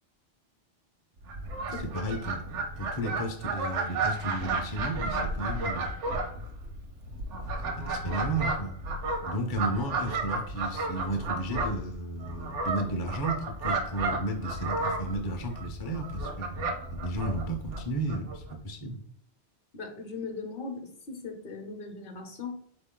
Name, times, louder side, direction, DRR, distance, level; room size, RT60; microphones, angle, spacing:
Fowl, 1.2-18.5, right 3 dB, 85° right, 1.1 m, -33 dB
voice 1, 1.7-2.4 2.8-5.9 7.6-8.8 9.2-19.0, right 1 dB, 30° left, 2 dB, 0.4 m, -33 dB
voice 2, 19.7-22.6, left 4 dB, 50° left, 3 dB, 0.8 m, -39 dB
4.0 x 3.0 x 3.7 m, 0.62 s
omnidirectional pair, 1.2 m